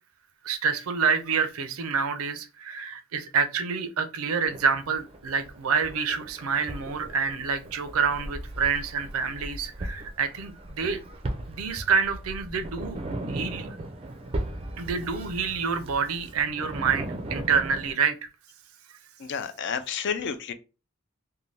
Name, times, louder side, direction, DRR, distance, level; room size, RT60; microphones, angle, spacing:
voice 1, 0.4-11.0 11.5-13.0 13.3-13.7 14.8-18.2, right 5 dB, 85° right, 0.5 m, -27 dB
sound 1, 4.4-17.9, right 1 dB, 25° right, 0.4 m, -37 dB
voice 2, 19.2-20.5, left 6 dB, 55° left, 0.4 m, -30 dB
2.7 x 2.2 x 3.2 m
head